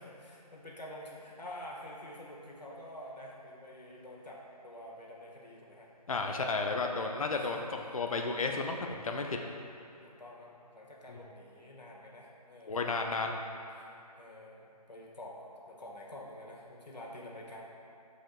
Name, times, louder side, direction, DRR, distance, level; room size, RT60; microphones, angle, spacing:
voice 1, 0.0-5.9 6.2-6.4 7.3-7.7 10.0-17.6, left 1 dB, 85° left, -3 dB, 1.6 m, -48 dB
voice 2, 6.1-7.6 7.9-9.4 12.7-13.4, left 3 dB, 55° left, 3 dB, 0.6 m, -32 dB
14.0 x 5.0 x 2.3 m, 2.6 s
figure-of-eight pair, 165°, 21 cm